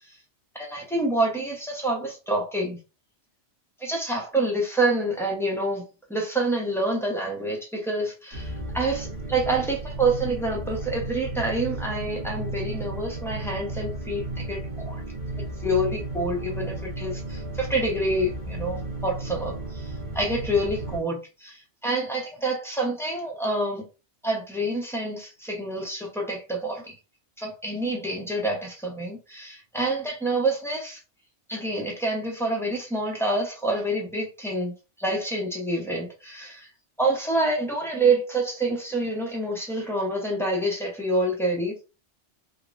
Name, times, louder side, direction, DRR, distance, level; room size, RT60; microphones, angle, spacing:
voice 1, 0.5-2.8 3.8-5.8 6.1-15.0 15.6-23.8 24.2-26.9 27.4-31.0 31.5-36.7 37.0-41.7, right 2 dB, 5° left, -2 dB, 0.6 m, -27 dB
sound 1, 8.3-21.0, right 2 dB, 50° right, 1.2 m, -34 dB
3.6 x 2.1 x 2.5 m, 0.31 s
omnidirectional pair, 1.2 m